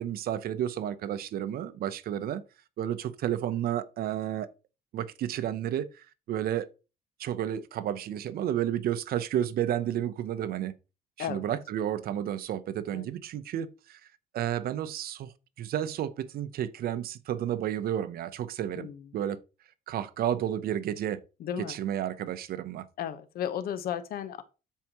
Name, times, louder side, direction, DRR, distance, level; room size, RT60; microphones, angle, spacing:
voice 1, 0.0-2.4 2.8-4.5 4.9-5.9 6.3-6.7 7.2-10.7 11.2-14.0 14.3-15.3 15.6-19.4 19.9-21.2 21.6-22.9, right 11 dB, 60° right, 0.8 m, -31 dB
voice 2, 18.8-19.1 21.4-21.8 23.0-24.4, left 9 dB, 65° left, 1.1 m, -34 dB
12.5 x 4.7 x 3.0 m
cardioid pair, 110°, 17 cm